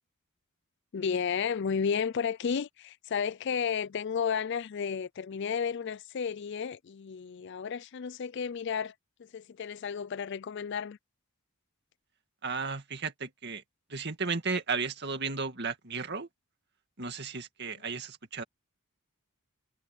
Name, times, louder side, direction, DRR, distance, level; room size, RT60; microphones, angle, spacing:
voice 1, 0.9-8.9 9.2-11.0, left 6 dB, 50° left, 0.4 m, -32 dB
voice 2, 12.4-13.6 13.9-16.3 17.0-18.4, right 4 dB, 50° right, 2.2 m, -34 dB
head